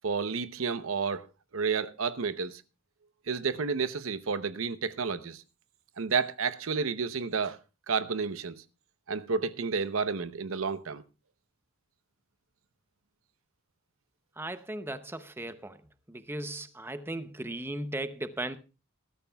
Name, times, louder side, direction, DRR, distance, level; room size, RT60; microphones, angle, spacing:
voice 1, 0.0-1.2 1.5-2.6 3.3-5.4 6.0-7.6 7.9-8.6 9.1-11.0, right 5 dB, 70° right, 0.8 m, -31 dB
voice 2, 14.4-15.8 16.1-18.6, right 1 dB, 10° right, 0.7 m, -37 dB
19.5 x 13.0 x 2.3 m
head